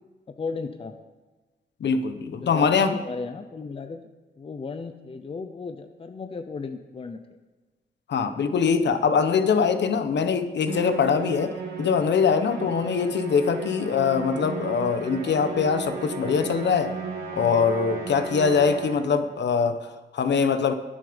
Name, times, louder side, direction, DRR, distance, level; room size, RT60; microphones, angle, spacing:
voice 1, 0.3-0.9 2.4-4.0 4.4-7.2 12.8-12.9, left 4 dB, 30° left, 8 dB, 0.7 m, -35 dB
voice 2, 1.8-3.0 8.1-16.9 17.3-20.7, left 6 dB, 70° left, 9 dB, 1.0 m, -23 dB
Musical instrument, 10.7-19.2, right 4 dB, 60° right, 3.1 m, -34 dB
21.5 x 7.4 x 5.2 m, 1.2 s
wide cardioid pair, 175°, 19 cm